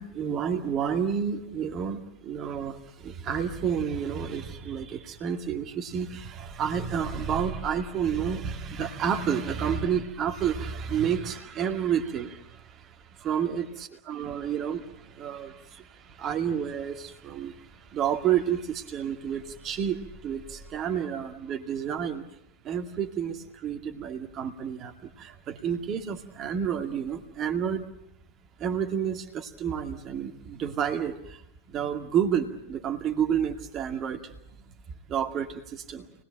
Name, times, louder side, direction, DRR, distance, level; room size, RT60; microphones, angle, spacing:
voice 1, 0.0-22.2 22.6-27.9 28.6-31.4 31.7-34.4 34.7-34.8 35.1-36.1, right 8 dB, 30° right, 4 dB, 2.3 m, -30 dB
28.5 x 20.5 x 8.9 m, 0.78 s
figure-of-eight pair, 90°, 0 cm